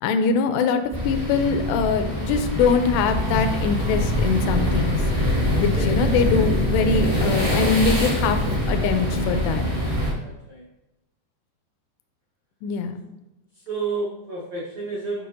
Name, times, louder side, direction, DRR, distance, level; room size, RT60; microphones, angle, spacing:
voice 1, 0.0-5.0 5.6-8.4 8.7-9.6 12.6-13.0, left 5 dB, 80° left, 7 dB, 2.5 m, -23 dB
sound 1, 0.9-10.1, equal, 35° right, 0.6 m, -23 dB
voice 2, 10.2-10.6 13.7-15.3, right 3 dB, 85° right, -6 dB, 1.5 m, -30 dB
9.4 x 5.7 x 2.8 m, 0.96 s
omnidirectional pair, 5.2 m